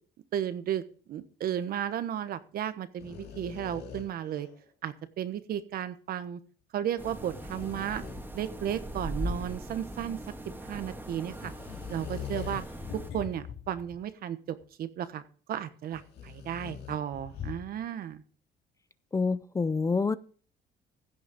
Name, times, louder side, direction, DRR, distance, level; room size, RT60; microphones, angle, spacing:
voice 1, 0.3-0.8 1.1-4.5 4.8-6.4 6.7-8.0 8.3-10.2 10.6-11.5 11.9-12.6 13.1-15.2 15.5-18.2, right 10 dB, 60° right, 1.2 m, -34 dB
sound 1, 3.0-4.6 7.0-8.5 11.3-14.0 14.6-14.7 15.9-17.8, left 8 dB, 75° left, 2.6 m, -42 dB
sound 2, 7.0-13.1, equal, 10° right, 2.1 m, -40 dB
voice 2, 19.1-20.2, left 4 dB, 20° left, 0.5 m, -27 dB
15.5 x 6.4 x 5.2 m
cardioid pair, 110°, 17 cm